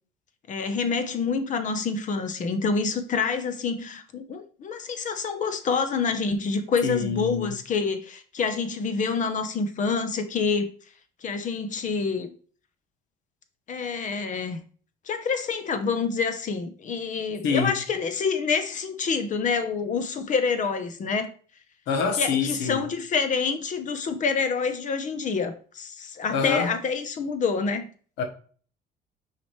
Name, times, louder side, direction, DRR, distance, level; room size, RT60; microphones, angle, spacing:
voice 1, 0.5-10.7 11.2-12.3 13.7-14.6 15.1-21.3 22.2-27.9, left 5 dB, 50° left, 1.0 m, -27 dB
voice 2, 6.8-7.5 17.4-17.7 21.9-22.8 26.3-26.7 28.2-28.3, left 5 dB, 90° left, 1.2 m, -25 dB
6.3 x 4.9 x 3.2 m
cardioid pair, 110°, 17 cm